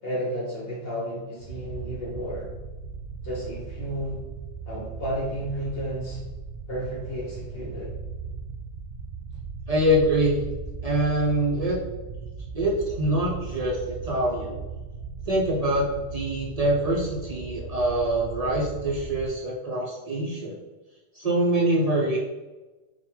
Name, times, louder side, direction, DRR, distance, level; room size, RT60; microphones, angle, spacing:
voice 1, 0.0-2.5 3.2-4.2 4.6-6.2 6.7-7.9, equal, 55° left, -4 dB, 1.1 m, -32 dB
sound 1, 1.4-19.3, right 5 dB, 80° right, 0.9 m, -38 dB
voice 2, 9.7-10.4 10.8-11.8 12.5-14.6 15.3-20.6 21.1-22.2, right 1 dB, 45° right, -4 dB, 0.5 m, -24 dB
3.6 x 2.2 x 4.4 m, 1.2 s
omnidirectional pair, 1.2 m